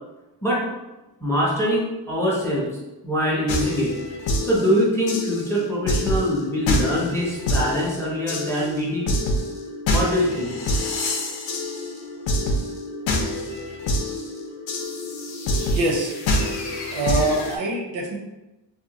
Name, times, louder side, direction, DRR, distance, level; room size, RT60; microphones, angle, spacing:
voice 1, 1.2-2.7 3.0-3.9 4.4-9.1 9.9-10.5, equal, 5° left, -5 dB, 0.4 m, -23 dB
sound 1, 3.5-17.6, left 1 dB, 80° left, 0.6 m, -26 dB
voice 2, 15.7-16.1 16.9-18.2, right 2 dB, 85° right, 0 dB, 0.7 m, -24 dB
2.7 x 2.2 x 2.7 m, 1.0 s
wide cardioid pair, 160°, 45 cm